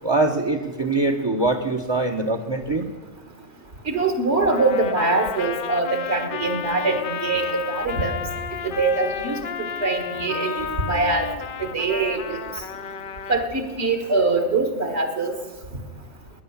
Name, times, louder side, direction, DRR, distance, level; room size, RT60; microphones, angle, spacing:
voice 1, 0.0-2.9, right 2 dB, 25° right, 7 dB, 0.8 m, -23 dB
voice 2, 3.9-8.1 8.6-9.4 9.8-11.3 11.6-12.4 13.3-15.3, right 3 dB, 60° right, 6 dB, 1.8 m, -23 dB
Trumpet, 4.5-13.5, left 7 dB, 55° left, 0.6 m, -32 dB
18.5 x 9.5 x 7.1 m, 1.3 s
omnidirectional pair, 1.3 m